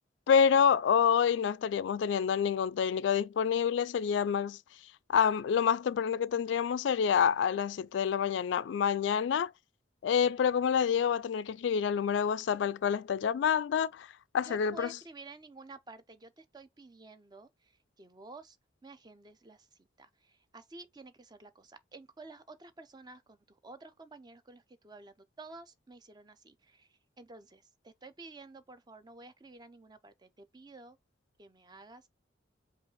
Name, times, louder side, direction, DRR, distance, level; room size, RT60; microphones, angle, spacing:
voice 1, 0.3-4.6 5.1-9.5 10.0-14.1 14.3-14.9, left 7 dB, 70° left, 0.3 m, -27 dB
voice 2, 14.4-18.6 18.8-31.0 31.4-32.1, right 3 dB, 20° right, 0.5 m, -51 dB
5.2 x 2.4 x 3.9 m
head